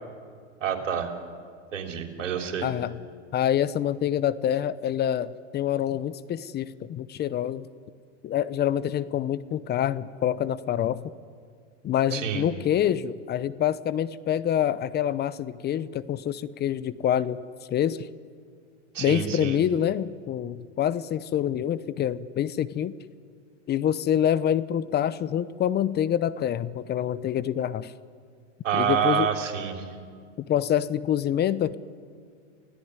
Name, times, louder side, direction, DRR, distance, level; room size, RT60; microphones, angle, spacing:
voice 1, 0.6-1.1 1.7-2.7 12.1-12.4 18.9-19.6 28.6-29.9, right 8 dB, 85° right, 4 dB, 3.7 m, -27 dB
voice 2, 2.6-3.0 3.3-7.7 8.2-11.1 11.8-17.4 17.7-18.0 19.0-22.9 23.7-27.9 28.7-29.3 30.5-31.8, left 10 dB, 25° left, 16 dB, 0.8 m, -26 dB
28.5 x 17.0 x 9.8 m, 2.1 s
hypercardioid pair, 110°, 36 cm